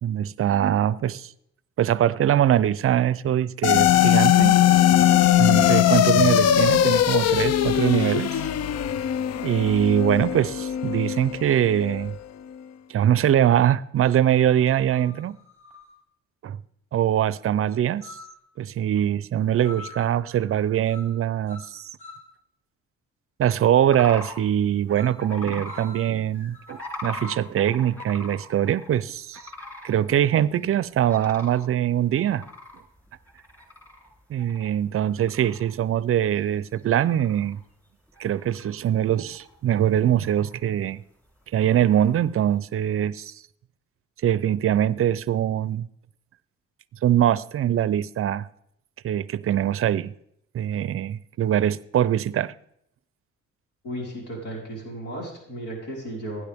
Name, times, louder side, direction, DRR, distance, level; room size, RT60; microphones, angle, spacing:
voice 1, 0.0-1.3 1.8-4.6 5.4-8.4 9.4-12.2 12.9-15.4 16.4-16.6 16.9-18.1 18.6-21.8 23.4-29.4 29.8-32.4 34.3-37.6 38.2-41.0 41.5-43.3 44.2-45.9 47.0-48.5 49.0-50.1 50.5-52.5, right 10 dB, 45° right, 0.5 m, -22 dB
sound 1, 3.6-12.1, left 11 dB, 55° left, 0.5 m, -20 dB
sound 2, 13.4-13.5 14.4-16.0 18.0-18.4 19.6-20.2 20.8-21.2 21.5-22.3 24.9-25.2 25.7-27.4, left 3 dB, 25° left, 6.1 m, -45 dB
sound 3, 23.9-24.3 25.2-25.9 26.7-29.0 29.3-30.0 30.4-30.5 31.0-31.6 32.1-34.1 34.4-34.8 35.2-35.7 36.2-36.3 36.8-37.6 38.1-38.8 39.2-39.7 40.0-40.6 41.7-42.2, left 2 dB, 5° left, 2.8 m, -40 dB
voice 2, 53.8-56.4, right 1 dB, 80° left, 4.8 m, -34 dB
16.5 x 9.9 x 3.5 m
cardioid pair, 90°, 30 cm